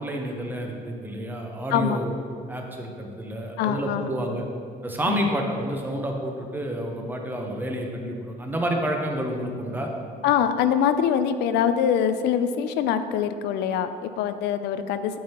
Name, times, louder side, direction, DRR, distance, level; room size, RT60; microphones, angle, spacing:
voice 1, 0.0-2.2 2.5-4.4 4.8-9.9, right 1 dB, 10° right, 1 dB, 0.8 m, -29 dB
voice 2, 3.6-4.1 5.1-5.2 10.2-15.2, left 8 dB, 85° left, 10 dB, 0.4 m, -24 dB
8.5 x 5.5 x 2.9 m, 2.3 s
cardioid pair, 110°, 17 cm